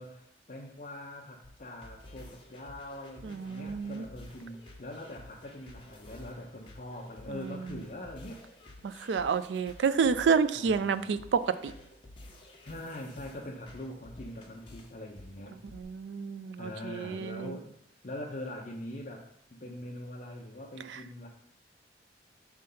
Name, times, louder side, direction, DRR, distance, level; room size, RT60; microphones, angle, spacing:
voice 1, 0.0-8.4 10.5-11.0 12.6-15.6 16.6-17.7 18.0-21.3, left 1 dB, 45° left, -2 dB, 0.7 m, -43 dB
sound 1, 1.4-15.8, left 1 dB, 30° left, 1.1 m, -52 dB
voice 2, 3.2-4.0 7.3-7.5 8.8-11.7 15.7-17.6 20.9-21.0, right 5 dB, 85° right, 12 dB, 0.4 m, -29 dB
6.6 x 3.5 x 5.4 m, 0.69 s
head